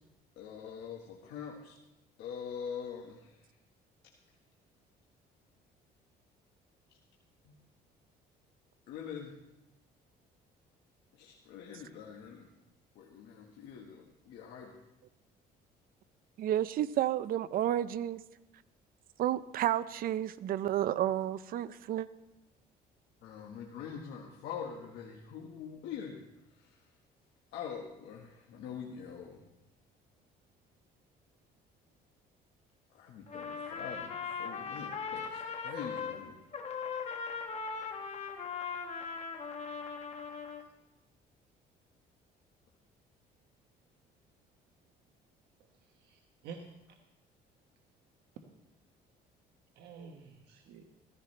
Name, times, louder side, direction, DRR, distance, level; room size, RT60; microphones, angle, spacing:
voice 1, 0.4-1.8 2.2-3.4 7.4-7.6 8.9-9.3 11.1-12.5 12.9-14.8 23.2-26.2 26.5-26.8 27.5-29.4 32.9-36.4, left 7 dB, 80° left, -1 dB, 1.5 m, -44 dB
voice 2, 16.4-18.2 19.2-22.1, right 12 dB, 60° right, 15 dB, 0.6 m, -31 dB
Trumpet, 33.3-36.2 36.5-40.6, left 5 dB, 40° left, 1.4 m, -39 dB
voice 3, 45.6-46.6 49.7-50.8, right 5 dB, 75° right, 3 dB, 1.3 m, -50 dB
15.0 x 15.0 x 3.3 m, 0.94 s
cardioid pair, 110°, 17 cm